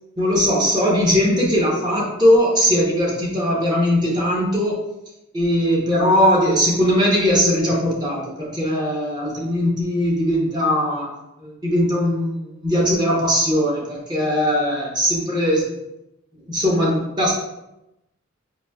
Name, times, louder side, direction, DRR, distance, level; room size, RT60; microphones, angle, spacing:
voice 1, 0.2-4.8 5.3-11.1 11.4-15.6 16.5-17.3, equal, 20° right, -4 dB, 0.8 m, -19 dB
4.8 x 2.6 x 2.2 m, 0.90 s
head